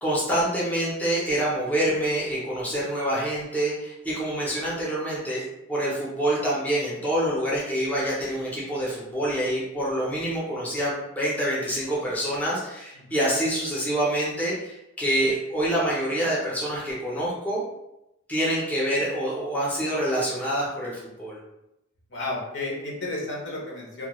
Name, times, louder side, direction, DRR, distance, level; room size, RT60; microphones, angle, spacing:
voice 1, 0.0-5.4 5.7-17.6 18.3-21.4, right 1 dB, 10° left, -6 dB, 0.5 m, -26 dB
voice 2, 22.1-24.1, left 2 dB, 60° left, -3 dB, 0.7 m, -32 dB
2.3 x 2.1 x 2.9 m, 0.88 s
head